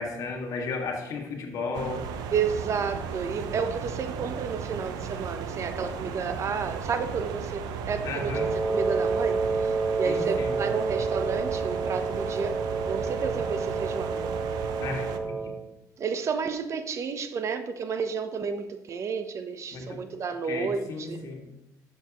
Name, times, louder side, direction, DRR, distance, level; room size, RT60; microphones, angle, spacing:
voice 1, 0.0-2.0 8.0-8.5 10.0-10.6 14.8-15.5 19.7-20.0 20.4-21.4, left 4 dB, 60° left, 1 dB, 2.0 m, -34 dB
sound 1, 1.7-15.2, right 7 dB, 80° right, 0.7 m, -35 dB
voice 2, 2.3-12.5 12.9-14.3 15.4-15.5 16.0-21.3, right 5 dB, 45° right, 9 dB, 0.8 m, -31 dB
Wind instrument woodwind instrument, 8.3-15.6, right 4 dB, 15° right, 0.8 m, -29 dB
12.0 x 7.1 x 3.1 m, 0.94 s
cardioid pair, 100°, 7 cm